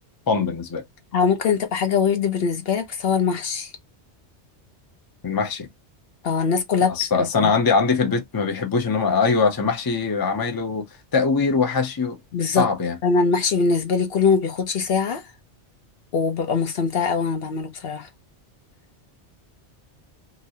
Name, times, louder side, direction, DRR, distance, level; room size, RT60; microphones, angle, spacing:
voice 1, 0.3-0.8 5.2-5.7 6.9-10.8 11.1-12.2 12.5-13.0, left 4 dB, 25° left, 0.6 m, -22 dB
voice 2, 1.1-3.7 6.2-6.9 7.2-7.5 12.3-12.7 13.0-15.2 16.1-18.1, left 5 dB, 60° left, 0.8 m, -22 dB
3.0 x 2.6 x 2.7 m
omnidirectional pair, 1.2 m